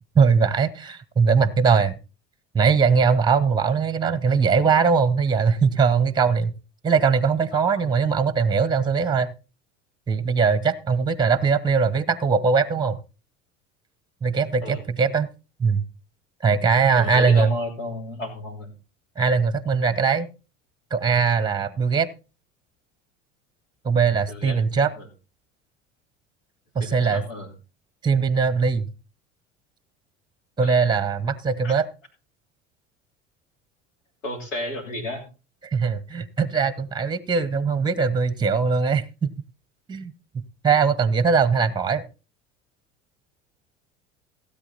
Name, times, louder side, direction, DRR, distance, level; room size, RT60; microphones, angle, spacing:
voice 1, 0.1-2.0 2.5-6.5 6.8-9.3 10.1-13.0 14.2-15.3 15.6-15.8 16.4-17.5 19.2-20.3 20.9-22.1 23.8-24.9 26.7-27.2 28.0-28.9 30.6-31.9 35.6-39.3 39.9-42.1, right 5 dB, 10° right, 18 dB, 0.9 m, -21 dB
voice 2, 7.6-7.9 8.8-8.9 14.6-14.8 16.9-18.7 24.3-24.6 25.0-25.1 26.8-27.5 30.6-30.8 31.6-31.7 34.2-35.2, left 1 dB, 75° left, 4 dB, 3.2 m, -33 dB
16.5 x 8.4 x 4.1 m, 0.33 s
figure-of-eight pair, 70°, 38 cm